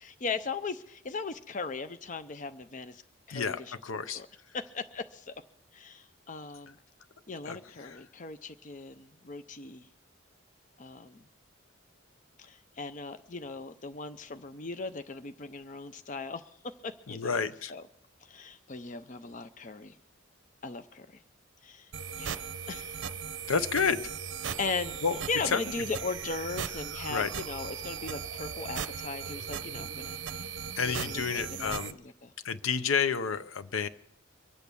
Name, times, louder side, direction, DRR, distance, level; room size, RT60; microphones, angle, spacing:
voice 1, 0.0-3.0 3.3-4.3 4.5-5.3 5.7-6.8 7.3-9.9 10.8-11.2 12.4-17.4 17.7-17.8 18.2-20.0 20.6-21.2 21.6-21.9 22.2-23.0 24.6-25.0 25.3-32.3, left 4 dB, 40° left, 11 dB, 0.5 m, -38 dB
voice 2, 3.3-4.2 7.5-7.6 7.8-8.0 17.1-17.7 23.5-24.0 25.0-25.2 25.5-25.6 27.1-27.3 30.8-32.0 32.4-33.9, left 6 dB, 80° left, 14 dB, 0.7 m, -30 dB
sound 1, 21.9-31.9, right 7 dB, 60° right, 0.6 m, -38 dB
23.5 x 8.3 x 6.9 m, 0.75 s
head